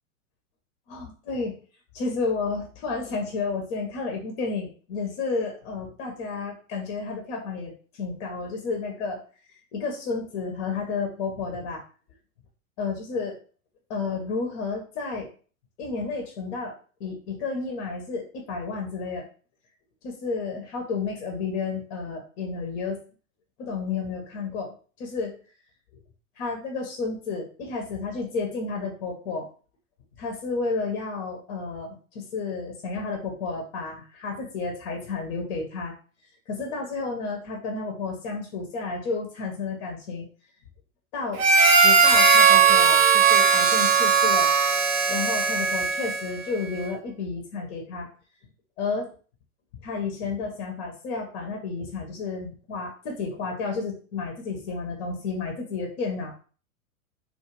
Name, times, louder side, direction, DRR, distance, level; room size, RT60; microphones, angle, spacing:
voice 1, 0.9-1.6 1.9-7.7 8.0-9.2 9.5-11.8 12.8-13.3 13.9-15.3 15.8-16.7 17.0-19.3 20.0-23.0 23.6-25.3 26.4-29.5 30.2-35.9 36.5-40.2 41.1-41.4 41.8-44.5 45.1-48.1 48.8-49.1 49.8-56.4, left 4 dB, 45° left, 2 dB, 0.7 m, -31 dB
Harmonica, 41.4-46.4, right 5 dB, 65° right, 0.8 m, -18 dB
2.3 x 2.2 x 3.0 m, 0.39 s
hypercardioid pair, 100°, 43 cm